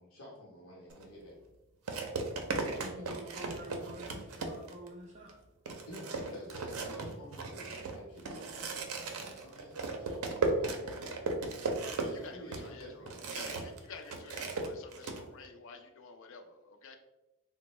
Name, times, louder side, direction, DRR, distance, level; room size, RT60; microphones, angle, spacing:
voice 1, 0.0-1.4 2.7-3.1 5.8-11.3 11.9-13.3, equal, 80° left, -5 dB, 0.8 m, -50 dB
sound 1, 0.9-1.1 1.9-4.9 5.3-5.4 5.7-13.8 14.1-15.2, right 3 dB, 85° right, 0.5 m, -36 dB
voice 2, 2.6-5.4 12.0-12.2, equal, 30° right, -3 dB, 0.4 m, -48 dB
voice 3, 11.8-16.9, left 4 dB, 60° left, 5 dB, 0.4 m, -51 dB
3.5 x 2.0 x 3.0 m, 0.99 s
head